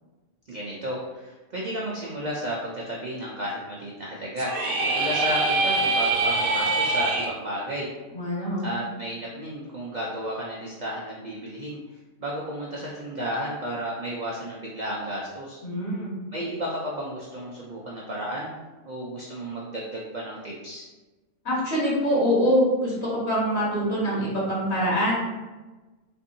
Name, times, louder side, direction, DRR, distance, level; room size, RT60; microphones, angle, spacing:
voice 1, 0.5-4.5 4.9-7.9 8.6-11.8 12.2-15.6 16.3-18.5 18.8-20.9, equal, 60° right, -4 dB, 0.4 m, -33 dB
sound 1, 4.4-7.3, right 3 dB, 80° right, 1.1 m, -24 dB
voice 2, 8.1-8.7 15.6-16.1 21.4-25.1, equal, 55° left, -7 dB, 1.6 m, -24 dB
4.3 x 2.6 x 2.7 m, 1.2 s
omnidirectional pair, 1.4 m